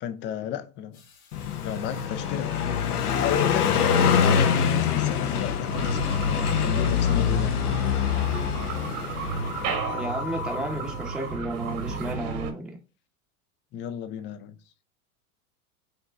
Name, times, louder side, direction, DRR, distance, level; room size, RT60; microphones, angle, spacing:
voice 1, 0.0-1.0 1.6-7.6 13.7-14.6, left 8 dB, 30° left, 0.4 m, -33 dB
sound 1, 0.9-2.1 2.8-7.0 8.2-11.4 11.9-12.1, left 13 dB, 65° left, 2.1 m, -42 dB
Car passing by, 1.3-9.8, left 7 dB, 85° left, 0.8 m, -25 dB
sound 2, 5.7-12.5, right 5 dB, 45° right, 1.1 m, -33 dB
voice 2, 9.9-12.8, right 2 dB, ahead, 0.7 m, -33 dB
5.1 x 3.0 x 2.3 m
hypercardioid pair, 105°, 44 cm